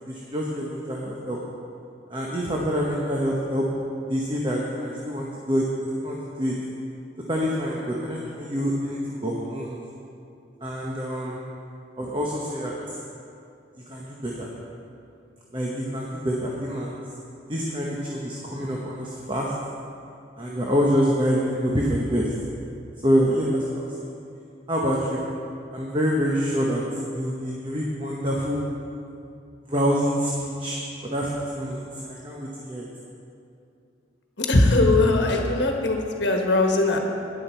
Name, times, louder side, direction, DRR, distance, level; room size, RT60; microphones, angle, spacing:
voice 1, 0.1-1.4 2.1-3.6 4.1-5.6 6.0-6.5 7.3-9.8 10.6-11.4 12.0-12.8 13.9-14.5 15.5-17.0 17.5-19.5 20.4-22.3 23.0-23.6 24.7-25.3 25.7-26.8 27.1-28.6 29.7-32.9, equal, 25° right, -3 dB, 1.0 m, -26 dB
voice 2, 34.4-37.0, left 2 dB, 75° left, 2 dB, 1.3 m, -20 dB
11.0 x 10.0 x 4.5 m, 2.5 s
head